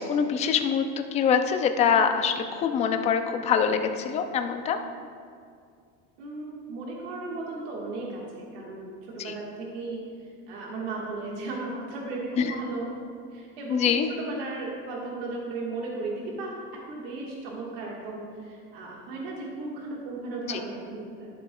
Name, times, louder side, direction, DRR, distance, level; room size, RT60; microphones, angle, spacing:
voice 1, 0.1-4.8 9.2-9.3 12.4-12.5 13.7-14.1 20.5-20.6, left 7 dB, 25° left, 7 dB, 0.4 m, -24 dB
voice 2, 6.2-10.0 10.5-12.9 13.3-16.5 16.9-21.3, right 3 dB, 85° right, -3 dB, 1.5 m, -35 dB
11.5 x 7.6 x 2.2 m, 2.2 s
cardioid pair, 160°, 29 cm